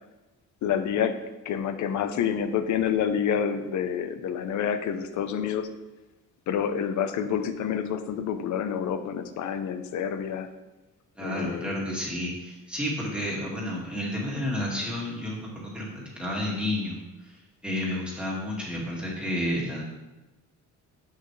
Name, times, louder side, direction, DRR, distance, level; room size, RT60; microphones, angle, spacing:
voice 1, 0.6-1.2 1.4-5.7 6.5-10.5 11.2-11.7, left 8 dB, 65° left, 10 dB, 0.8 m, -28 dB
voice 2, 11.2-17.4 17.6-19.9, left 1 dB, 5° right, -5 dB, 2.1 m, -31 dB
10.5 x 8.2 x 3.3 m, 1.1 s
cardioid pair, 170°, 32 cm